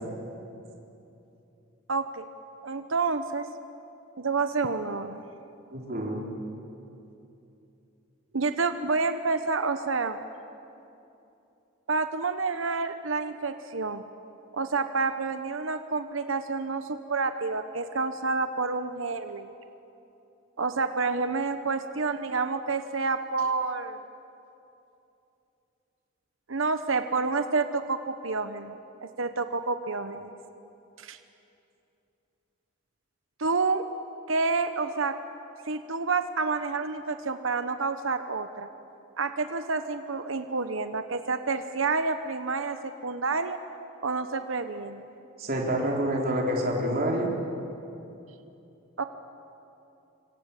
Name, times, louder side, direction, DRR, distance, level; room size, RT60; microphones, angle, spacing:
voice 1, 1.9-2.2 2.6-3.4 4.2-5.2 8.3-10.2 11.9-14.0 14.5-19.5 20.6-24.0 26.5-28.8 29.0-30.3 31.0-31.2 33.4-33.9 34.3-35.1 35.7-38.7 39.2-42.8 43.0-43.6 44.0-45.0 49.0-49.1, right 4 dB, 85° right, 9 dB, 1.0 m, -29 dB
voice 2, 5.7-6.2 45.4-47.3, right 1 dB, 50° right, -2 dB, 3.9 m, -27 dB
26.5 x 25.5 x 8.5 m, 2.8 s
head